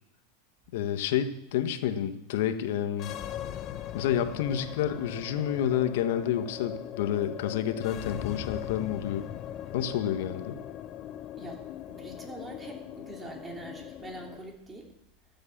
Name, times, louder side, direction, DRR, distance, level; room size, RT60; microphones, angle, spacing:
voice 1, 0.7-3.1 3.9-9.2 9.7-10.6, left 10 dB, 70° left, 9 dB, 1.4 m, -29 dB
sound 1, 2.9-14.4, left 11 dB, 40° left, 0.9 m, -40 dB
voice 2, 11.9-14.9, right 2 dB, 15° right, 1 dB, 3.2 m, -43 dB
14.0 x 7.9 x 7.4 m, 0.83 s
supercardioid pair, 125°, 0 cm